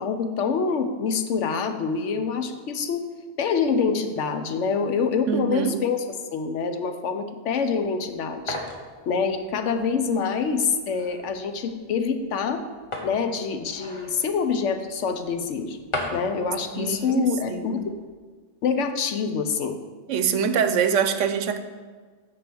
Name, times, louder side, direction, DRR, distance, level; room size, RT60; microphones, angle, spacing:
voice 1, 0.0-3.0 3.4-6.0 6.3-8.6 9.1-12.6 13.0-15.8 16.1-18.0 18.6-19.8, left 5 dB, 75° left, 7 dB, 1.1 m, -26 dB
voice 2, 5.3-5.8 16.7-17.8 20.1-21.6, right 7 dB, 85° right, 10 dB, 1.0 m, -24 dB
sound 1, 7.6-18.0, left 1 dB, 25° left, 1.1 m, -39 dB
9.6 x 3.9 x 6.8 m, 1.5 s
omnidirectional pair, 1.2 m